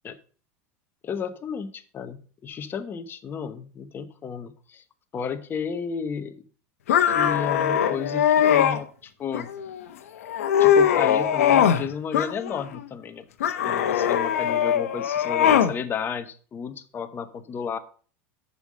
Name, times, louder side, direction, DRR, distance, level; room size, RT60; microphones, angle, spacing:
voice 1, 1.0-4.8 5.1-6.4 7.1-9.5 10.6-13.2 13.6-17.8, left 6 dB, 30° left, 9 dB, 1.0 m, -33 dB
sound 1, 6.9-8.8 9.3-9.8 10.2-11.8 12.1-12.8 13.4-15.7, left 9 dB, 90° left, 0.9 m, -21 dB
7.0 x 5.6 x 6.3 m, 0.41 s
supercardioid pair, 115°, 8 cm